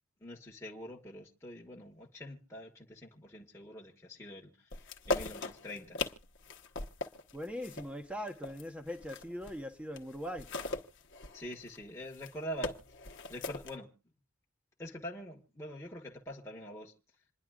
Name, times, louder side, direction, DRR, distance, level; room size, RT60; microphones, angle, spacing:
voice 1, 0.2-4.5 5.1-6.0 11.3-12.8 13.3-13.9 14.8-16.9, equal, 15° left, 1.3 m, -44 dB
sound 1, 4.7-9.6 10.0-13.7, left 2 dB, 55° left, 1.1 m, -39 dB
voice 2, 7.3-10.5, equal, 5° right, 1.0 m, -41 dB
27.5 x 11.0 x 2.4 m
head